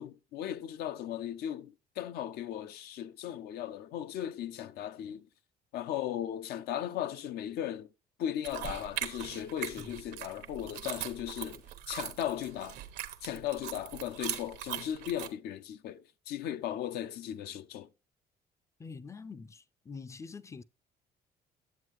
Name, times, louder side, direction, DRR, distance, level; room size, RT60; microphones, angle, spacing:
voice 1, 0.0-5.3 5.7-7.9 8.2-11.6 11.9-12.8 13.2-17.9, left 11 dB, 70° left, 0.6 m, -37 dB
sound 1, 8.4-15.3, right 13 dB, 85° right, 1.0 m, -41 dB
voice 2, 18.8-20.6, left 4 dB, 15° left, 0.4 m, -45 dB
9.6 x 7.4 x 3.0 m
cardioid pair, 110°, 17 cm